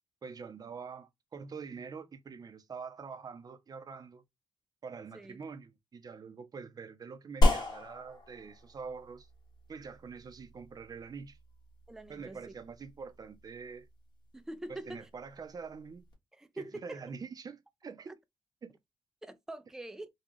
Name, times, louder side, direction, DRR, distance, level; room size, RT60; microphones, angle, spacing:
voice 1, 0.2-4.2 4.8-9.3 9.7-11.4 12.1-13.9 14.7-16.0 16.5-18.2 18.6-18.8, right 5 dB, 40° right, 0.7 m, -45 dB
sound 1, 7.4-16.1, left 1 dB, 45° left, 1.6 m, -34 dB
voice 2, 11.9-12.5 14.3-15.1 16.3-17.0 18.1-18.2 19.2-20.1, right 1 dB, 5° right, 0.4 m, -44 dB
3.8 x 2.3 x 3.1 m
cardioid pair, 100°, 10 cm